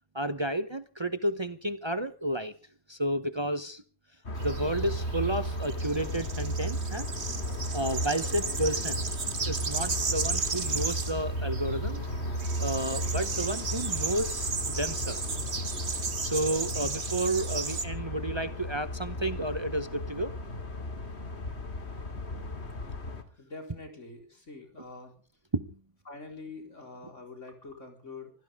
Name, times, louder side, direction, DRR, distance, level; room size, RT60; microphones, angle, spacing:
voice 1, 0.1-2.5 2.9-3.8 4.4-7.1 7.7-9.1 9.5-12.0 12.6-15.2 16.2-20.4 25.5-25.7, right 1 dB, 25° right, 0.9 m, -31 dB
sound 1, 4.2-23.2, equal, 65° left, 2.7 m, -35 dB
sound 2, 4.4-17.8, right 5 dB, 65° right, 2.0 m, -35 dB
voice 2, 23.4-25.1 26.1-28.3, left 3 dB, 80° left, 4.9 m, -45 dB
25.0 x 16.0 x 3.6 m
omnidirectional pair, 1.2 m